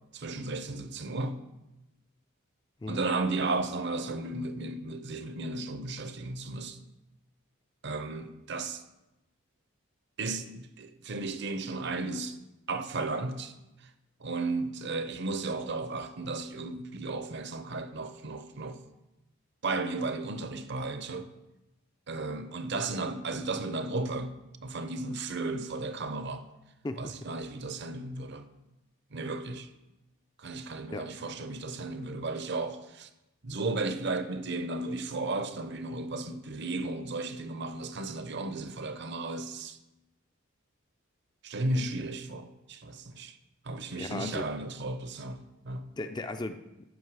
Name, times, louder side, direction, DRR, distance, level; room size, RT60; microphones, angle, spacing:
voice 1, 0.1-1.4 2.9-6.8 7.8-8.8 10.2-12.4 12.7-13.5 13.8-13.9 14.2-18.8 19.6-21.3 22.1-24.3 24.6-26.4 27.0-28.4 29.1-29.7 30.4-33.1 33.4-39.8 41.4-43.4 43.6-45.9, right 3 dB, 55° right, 0.8 m, -34 dB
voice 2, 44.0-44.5 46.0-46.9, left 2 dB, 20° left, 0.4 m, -36 dB
13.0 x 5.6 x 4.8 m
head